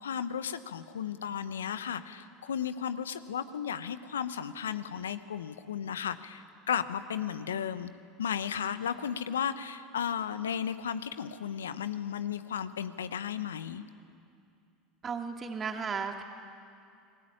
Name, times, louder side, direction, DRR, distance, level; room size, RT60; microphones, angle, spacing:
voice 1, 0.0-7.9 8.2-13.8, left 8 dB, 80° left, 12 dB, 1.1 m, -34 dB
voice 2, 15.0-16.2, right 5 dB, 30° right, 4 dB, 2.5 m, -34 dB
29.5 x 21.5 x 8.8 m, 2.5 s
hypercardioid pair, 75°, 0 cm